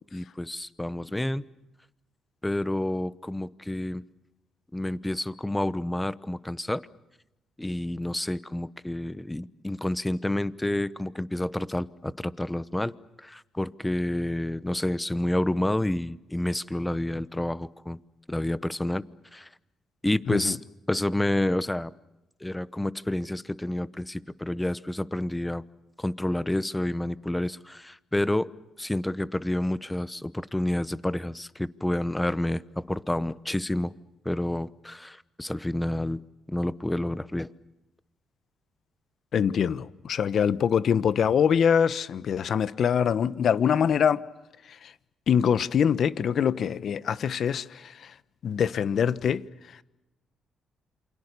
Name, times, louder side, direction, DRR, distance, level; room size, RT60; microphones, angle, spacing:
voice 1, 0.1-1.4 2.4-4.0 4.7-6.9 7.6-12.9 13.2-18.0 18.3-19.0 19.3-19.5 20.0-20.6 20.9-21.9 22.4-25.6 26.0-28.5 28.8-33.9 34.2-36.2 36.5-37.5, left 1 dB, 10° left, 1.0 m, -29 dB
voice 2, 39.3-44.2 44.7-44.9 45.3-48.1 48.4-49.4, left 8 dB, 60° left, 1.1 m, -24 dB
28.5 x 26.0 x 6.9 m
cardioid pair, 90°, 0 cm